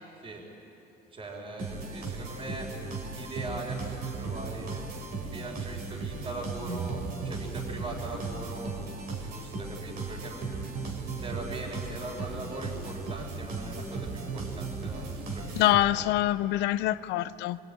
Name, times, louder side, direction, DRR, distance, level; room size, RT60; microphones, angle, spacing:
voice 1, 1.1-2.7 3.1-8.7 9.2-10.6 11.2-16.1, right 2 dB, 35° right, -1 dB, 4.2 m, -41 dB
sound 1, 1.6-16.2, right 3 dB, 65° right, 3.9 m, -36 dB
voice 2, 15.6-17.6, left 15 dB, 90° left, 15 dB, 0.7 m, -25 dB
24.5 x 20.5 x 9.0 m, 2.9 s
cardioid pair, 110°, 17 cm